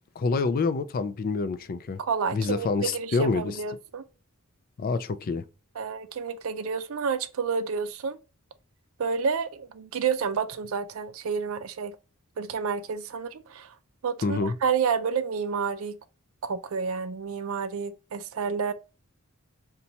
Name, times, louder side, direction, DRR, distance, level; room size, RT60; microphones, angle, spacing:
voice 1, 0.2-2.0 2.3-3.5 4.8-5.4 14.2-14.5, left 4 dB, 40° left, 0.3 m, -27 dB
voice 2, 2.0-4.0 5.8-8.2 9.0-12.0 12.4-13.7 14.0-16.0 16.4-18.7, right 6 dB, 65° right, 0.4 m, -29 dB
4.0 x 2.2 x 2.7 m
head